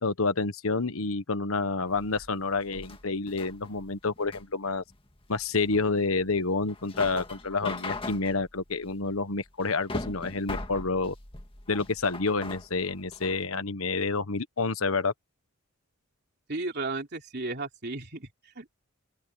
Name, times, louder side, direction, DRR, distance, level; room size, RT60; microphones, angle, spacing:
voice 1, 0.0-4.8 5.3-11.1 11.7-15.1, left 3 dB, 75° left, 1.3 m, -29 dB
sound 1, 1.9-13.4, left 2 dB, 25° left, 1.9 m, -41 dB
voice 2, 16.5-18.8, right 3 dB, 50° right, 3.3 m, -34 dB
open air
head